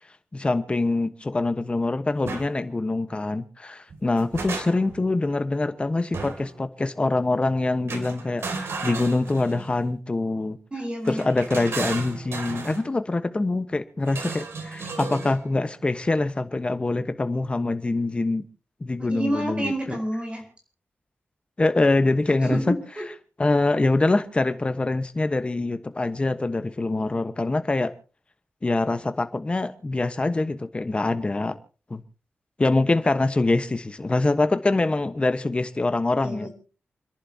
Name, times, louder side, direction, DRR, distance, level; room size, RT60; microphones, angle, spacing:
voice 1, 0.3-10.6 11.1-18.4 18.8-20.0 21.6-22.7 23.4-27.9 28.6-31.6 31.9-32.0 32.6-36.5, left 2 dB, 25° left, 1.2 m, -24 dB
sound 1, 2.2-2.5 3.9-5.0 6.1-6.6 7.9-9.7 11.0-12.8 14.1-15.4, right 4 dB, 90° right, 2.8 m, -34 dB
voice 2, 10.7-11.3 19.0-20.4 22.4-23.1 36.2-36.5, right 1 dB, 25° right, 4.7 m, -29 dB
29.0 x 11.0 x 2.9 m
wide cardioid pair, 115°, 4 cm